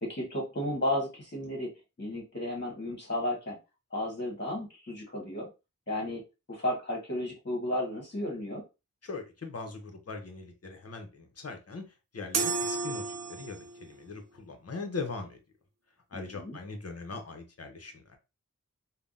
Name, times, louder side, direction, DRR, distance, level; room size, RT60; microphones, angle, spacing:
voice 1, 0.0-1.7 2.0-3.6 3.9-5.5 5.9-6.2 6.5-8.6 16.1-16.6, left 1 dB, 35° left, -1 dB, 1.4 m, -33 dB
voice 2, 9.0-15.4 16.1-18.2, left 3 dB, 55° left, 4 dB, 0.8 m, -40 dB
sound 1, 12.3-13.8, right 4 dB, 55° right, 0.5 m, -32 dB
3.4 x 2.2 x 2.5 m, 0.27 s
wide cardioid pair, 70°, 31 cm